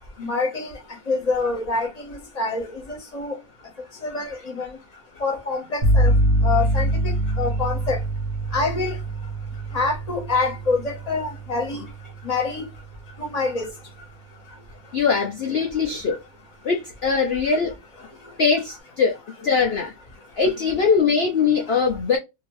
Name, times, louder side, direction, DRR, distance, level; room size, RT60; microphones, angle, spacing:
voice 1, 0.2-0.7 1.1-3.4 4.0-4.7 5.2-6.1 6.4-8.0 8.5-8.9 9.7-11.8 12.2-12.7 13.2-13.7, left 3 dB, 30° left, 0.9 m, -26 dB
sound 1, 5.8-13.5, right 1 dB, 40° right, 0.8 m, -24 dB
voice 2, 14.9-16.2 16.6-17.7 18.4-19.9 20.4-22.2, left 5 dB, 90° left, 0.5 m, -21 dB
2.8 x 2.7 x 3.0 m
omnidirectional pair, 1.8 m